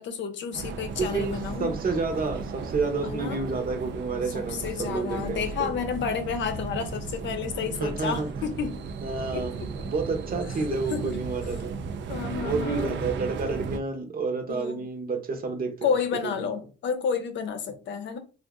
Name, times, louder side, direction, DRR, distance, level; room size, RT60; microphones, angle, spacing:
voice 1, 0.0-1.7 3.0-3.4 4.3-8.8 9.3-9.9 10.7-11.2 12.1-13.0 14.5-14.9 15.8-18.2, left 6 dB, 65° left, 0.6 m, -31 dB
sound 1, 0.5-13.8, right 5 dB, 65° right, 0.5 m, -35 dB
voice 2, 1.0-5.7 7.8-8.3 9.0-9.5 9.8-11.8 12.4-15.9 16.2-16.5, right 4 dB, 50° right, 0.9 m, -30 dB
2.5 x 2.4 x 3.6 m
cardioid pair, 90°, 20 cm